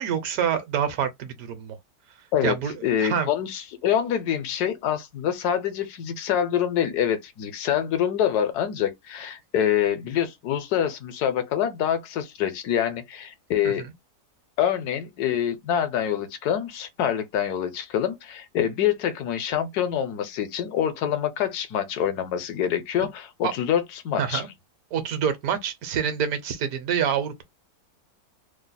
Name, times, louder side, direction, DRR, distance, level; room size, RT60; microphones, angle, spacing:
voice 1, 0.0-1.8 2.4-3.3 13.6-13.9 23.4-23.5 24.2-24.5 24.9-27.4, right 8 dB, 70° right, 1.2 m, -27 dB
voice 2, 2.8-13.9 14.6-24.5, left 9 dB, 80° left, 1.2 m, -26 dB
3.1 x 2.1 x 3.9 m
omnidirectional pair, 1.7 m